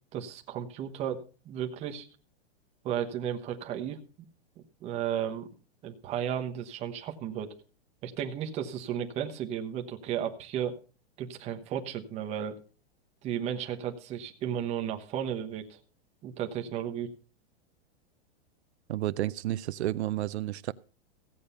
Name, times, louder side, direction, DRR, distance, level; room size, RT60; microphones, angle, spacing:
voice 1, 0.1-2.1 2.8-4.0 4.8-5.5 5.8-7.5 8.0-10.8 11.2-12.6 13.2-15.8 16.2-17.1, right 9 dB, 20° right, 1.1 m, -34 dB
voice 2, 18.9-20.7, right 14 dB, 85° right, 0.7 m, -31 dB
15.5 x 8.6 x 5.5 m
supercardioid pair, 170°, 32 cm